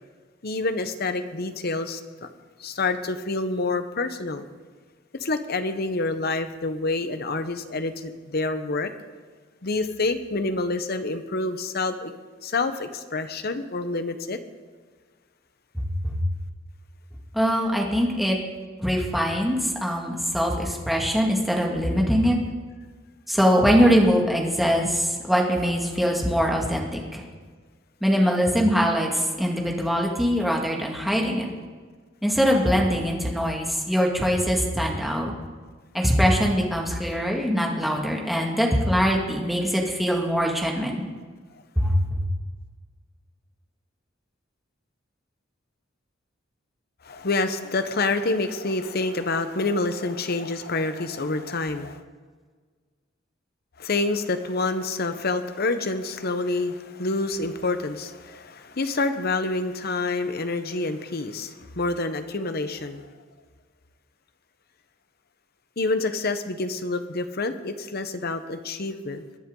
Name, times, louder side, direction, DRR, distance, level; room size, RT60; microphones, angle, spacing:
voice 1, 0.4-2.3 2.6-4.4 5.2-8.9 9.6-12.1 12.4-14.4 47.0-52.0 53.8-63.1 65.8-69.2, left 3 dB, 55° left, 9 dB, 1.0 m, -27 dB
voice 2, 15.8-16.2 17.3-18.4 18.8-22.4 23.3-27.2 28.0-31.5 32.2-35.3 35.9-41.0 41.8-42.2, equal, ahead, -1 dB, 2.0 m, -22 dB
22.5 x 10.0 x 3.9 m, 1.5 s
head